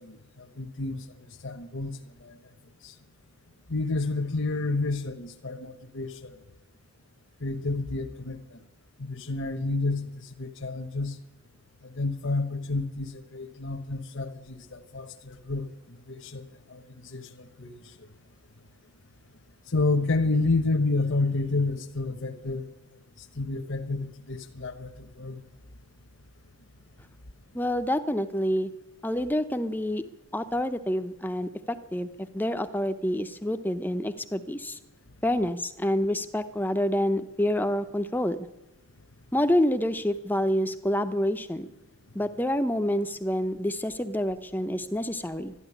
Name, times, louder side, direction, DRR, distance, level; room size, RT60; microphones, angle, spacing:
voice 1, 0.0-2.4 2.8-2.9 3.7-6.4 7.4-8.6 9.0-11.2 11.8-18.1 19.7-22.7 23.2-25.4, left 3 dB, 55° left, 5 dB, 1.1 m, -30 dB
voice 2, 27.5-28.7 29.0-30.0 30.3-34.8 35.2-38.4 39.3-41.7 42.1-45.5, left 1 dB, 10° left, 10 dB, 0.7 m, -27 dB
12.5 x 11.0 x 10.0 m, 0.97 s
head